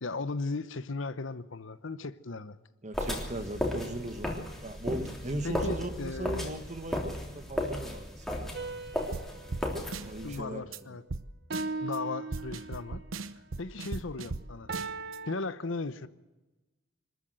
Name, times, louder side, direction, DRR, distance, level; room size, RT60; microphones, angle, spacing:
voice 1, 0.0-2.6 5.4-6.5 10.2-11.0 11.8-13.0 13.6-14.7 15.3-16.1, left 3 dB, 70° left, 0.9 m, -36 dB
voice 2, 2.8-4.3 4.6-7.0 7.3-8.3 10.0-10.7, right 1 dB, 35° right, 1.6 m, -38 dB
sound 1, 2.9-10.4, left 1 dB, ahead, 3.3 m, -35 dB
sound 2, 8.5-10.9 11.5-13.1 14.7-15.3, right 3 dB, 55° right, 1.3 m, -39 dB
sound 3, 9.1-9.3 9.5-9.7 9.9-10.4 10.7-10.8 11.1-11.2 11.5-12.0 12.3-14.4 14.7-15.2, right 3 dB, 75° right, 0.9 m, -37 dB
25.5 x 13.5 x 7.8 m
head